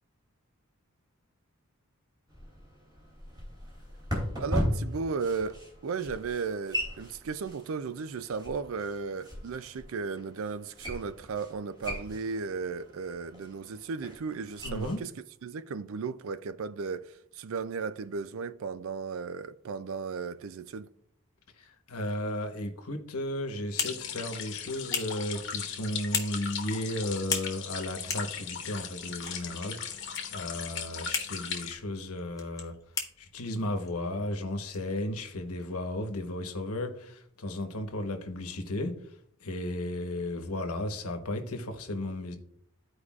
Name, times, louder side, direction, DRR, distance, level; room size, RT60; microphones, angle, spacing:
sound 1, 2.3-14.9, equal, 20° right, 3.0 m, -38 dB
voice 1, 4.4-15.1 15.4-20.9, right 5 dB, 65° right, 0.4 m, -35 dB
voice 2, 14.6-15.0 21.6-30.0 30.3-32.8 33.2-42.4, left 1 dB, 90° left, 1.1 m, -34 dB
sound 2, 23.2-35.6, left 5 dB, 15° left, 0.9 m, -40 dB
sound 3, 23.8-31.7, left 7 dB, 55° left, 1.0 m, -38 dB
13.5 x 4.8 x 2.4 m
head